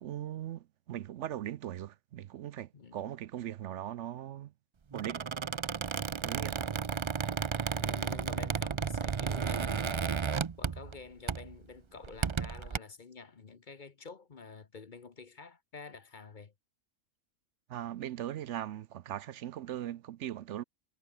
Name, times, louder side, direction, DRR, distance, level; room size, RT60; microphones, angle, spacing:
voice 1, 0.0-4.5 4.9-5.2 6.2-6.6 17.7-20.6, right 12 dB, 70° right, 0.9 m, -39 dB
voice 2, 2.7-3.1 6.6-6.9 7.7-10.1 10.6-16.5, left 4 dB, 40° left, 1.1 m, -49 dB
Squeak, 4.9-11.0 11.3-11.5 12.0-12.8, right 6 dB, 55° right, 0.3 m, -33 dB
omnidirectional pair, 1.4 m